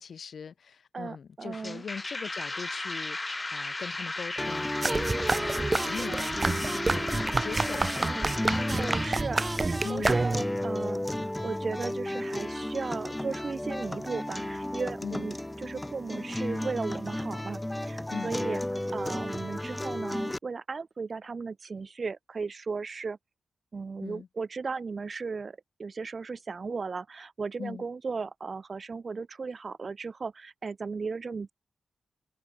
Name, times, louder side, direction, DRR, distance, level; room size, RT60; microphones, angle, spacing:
voice 1, 0.0-8.3 9.8-10.3 15.0-15.3 18.1-18.4 24.0-24.3 27.6-27.8, left 6 dB, 70° left, 5.2 m, -41 dB
voice 2, 0.9-1.8 8.8-18.6 18.9-23.2 23.7-31.5, right 4 dB, 55° right, 3.4 m, -36 dB
sound 1, 1.5-9.2, left 2 dB, 30° left, 2.3 m, -35 dB
sound 2, 4.4-20.4, left 1 dB, 15° left, 3.3 m, -34 dB
sound 3, 4.8-10.6, right 3 dB, 35° right, 3.1 m, -29 dB
cardioid pair, 50°, 0 cm